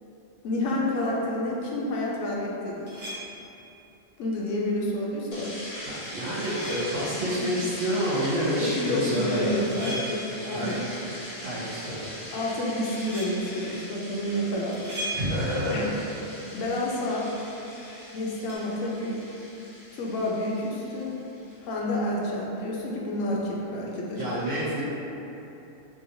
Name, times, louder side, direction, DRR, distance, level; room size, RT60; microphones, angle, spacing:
voice 1, 0.4-2.9 4.2-5.6 8.6-10.8 12.3-14.9 15.7-15.9 16.5-17.3 18.1-19.2 19.9-21.2 21.6-24.2, left 1 dB, 85° left, -4 dB, 1.0 m, -29 dB
sound 1, 2.9-3.6 6.1-7.2 9.3-10.5 13.0-13.5 14.7-15.8 18.5-18.6, right 1 dB, 40° right, 0.5 m, -38 dB
sound 2, 5.3-21.6, left 1 dB, 45° left, 0.8 m, -41 dB
voice 2, 5.9-10.2 10.5-11.1 11.4-12.1 15.1-15.9 24.1-24.8, equal, 90° right, -9 dB, 1.3 m, -28 dB
3.0 x 2.8 x 2.6 m, 3.0 s
omnidirectional pair, 1.3 m